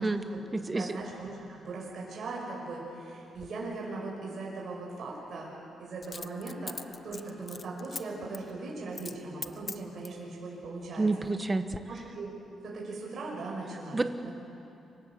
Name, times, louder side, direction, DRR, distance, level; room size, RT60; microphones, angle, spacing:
voice 1, 0.0-0.4 0.7-5.5 5.8-6.7 7.0-11.1 11.9-12.3 12.6-14.0, right 3 dB, 50° right, -3 dB, 6.3 m, -39 dB
voice 2, 0.5-1.0 11.0-11.7 13.9-14.3, right 3 dB, 20° right, 10 dB, 1.2 m, -29 dB
Coin (dropping), 3.3-3.5 6.0-8.0 8.3-8.5 8.9-9.2 9.4-10.2 10.8-11.4 11.7-11.8, left 4 dB, 30° left, 0.8 m, -41 dB
27.5 x 24.5 x 7.6 m, 2.7 s
cardioid pair, 135°, 0 cm